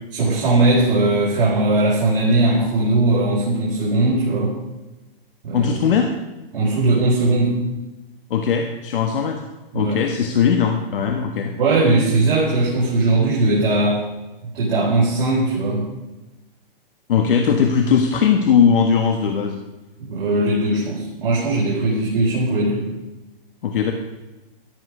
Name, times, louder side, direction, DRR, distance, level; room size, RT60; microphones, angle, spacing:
voice 1, 0.1-4.5 5.4-5.7 6.5-7.6 9.7-10.0 11.6-14.0 14.5-15.9 20.0-22.9, right 2 dB, 65° right, -6 dB, 4.8 m, -19 dB
voice 2, 5.5-6.1 8.3-9.5 9.7-11.5 17.1-19.6 23.6-23.9, left 7 dB, 65° left, 5 dB, 1.6 m, -19 dB
13.5 x 12.5 x 5.0 m, 1.1 s
hypercardioid pair, 140°, 29 cm